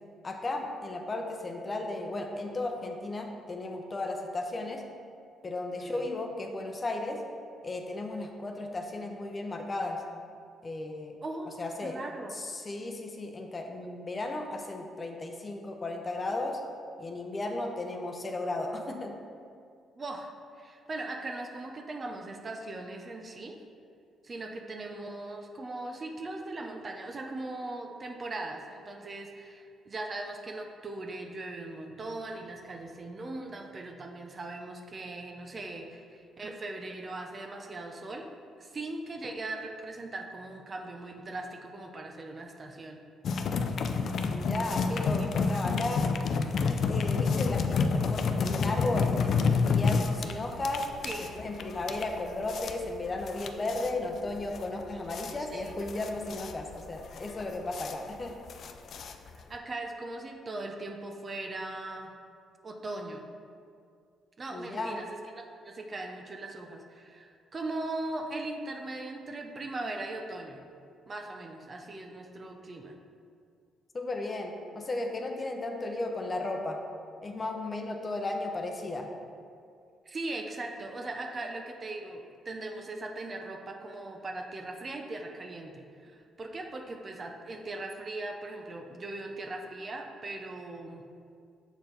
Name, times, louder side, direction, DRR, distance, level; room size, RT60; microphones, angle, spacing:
voice 1, 0.2-4.8 5.4-7.2 7.6-10.0 10.6-11.2 11.6-12.0 12.3-16.6 17.0-19.1 44.3-46.0 46.9-50.9 51.4-58.3 64.5-65.0 73.9-76.8 77.2-79.1, left 2 dB, 30° left, 3 dB, 0.7 m, -35 dB
voice 2, 11.2-11.6 11.8-12.3 20.0-23.6 24.2-38.3 38.6-43.0 45.5-45.7 51.0-51.3 55.5-55.7 59.5-62.1 62.6-63.3 64.4-70.7 71.1-72.9 80.1-91.1, right 2 dB, 35° right, 3 dB, 0.6 m, -39 dB
sound 1, 43.2-59.5, left 5 dB, 60° left, 0.4 m, -29 dB
7.0 x 4.4 x 4.0 m, 2.3 s
cardioid pair, 90°, 0 cm